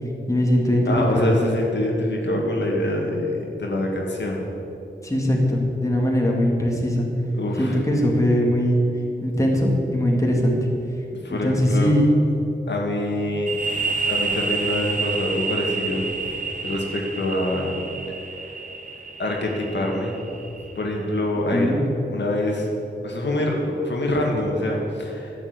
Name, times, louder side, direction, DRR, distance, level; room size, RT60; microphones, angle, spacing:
voice 1, 0.3-1.3 5.0-7.1 7.6-8.8 9.2-10.6 11.3-12.0 21.5-21.8, equal, 15° left, -1 dB, 2.1 m, -20 dB
voice 2, 0.9-4.4 7.3-7.8 11.2-11.9 12.7-13.5 14.0-16.1 16.6-17.7 19.2-20.1 20.8-21.7 22.1-22.7 23.0-25.3, left 1 dB, 70° left, -1 dB, 2.1 m, -25 dB
sound 1, 13.5-20.9, right 4 dB, 45° right, 1.1 m, -29 dB
11.5 x 7.5 x 8.1 m, 2.9 s
wide cardioid pair, 85°, 19 cm